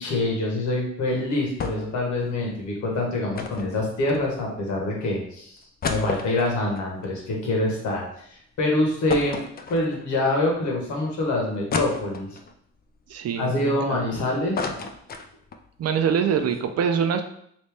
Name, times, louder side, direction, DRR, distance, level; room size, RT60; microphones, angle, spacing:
voice 1, 0.0-5.6 5.9-9.4 9.7-12.3 13.3-14.7, left 2 dB, 75° left, -1 dB, 1.3 m, -25 dB
sound 1, 1.6-2.0 2.3-2.4 3.3-4.6 5.1-5.2 5.6-8.0 8.4-8.5 9.1-10.2 10.7-10.8 11.7-12.5 13.1-14.1 14.3-15.7 16.0-16.1 16.4-16.6, left 4 dB, 30° left, 0.4 m, -32 dB
voice 2, 13.1-14.0 15.8-17.2, right 7 dB, 55° right, 7 dB, 0.5 m, -24 dB
3.1 x 2.7 x 3.4 m, 0.68 s
cardioid pair, 90°, 30 cm